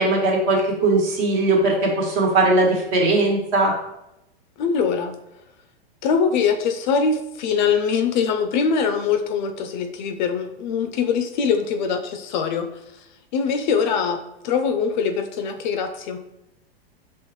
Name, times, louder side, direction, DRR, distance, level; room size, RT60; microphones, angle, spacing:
voice 1, 0.0-3.7, right 2 dB, 45° right, 0 dB, 1.3 m, -19 dB
voice 2, 4.6-5.2 6.0-12.7 13.3-16.2, left 6 dB, 50° left, 7 dB, 0.5 m, -23 dB
5.4 x 3.0 x 3.0 m, 0.87 s
hypercardioid pair, 135°, 31 cm